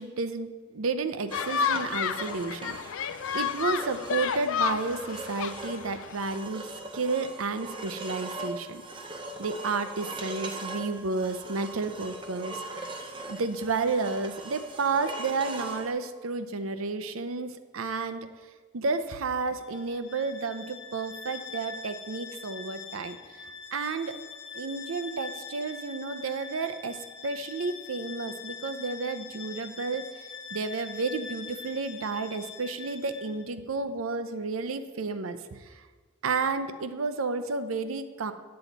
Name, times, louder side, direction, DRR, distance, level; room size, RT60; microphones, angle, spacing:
voice 1, 0.0-6.7 6.9-8.8 9.4-12.6 13.3-18.3 18.7-23.2 23.7-24.2 24.5-30.0 30.5-35.6 36.2-38.3, right 4 dB, 85° right, 10 dB, 0.6 m, -31 dB
sound 1, 1.3-6.4, left 7 dB, 75° left, 0.4 m, -31 dB
sound 2, 1.3-15.9, right 2 dB, 25° right, 0.7 m, -41 dB
Bowed string instrument, 19.6-33.5, left 5 dB, 55° left, 0.8 m, -43 dB
10.5 x 7.8 x 4.0 m, 1.4 s
head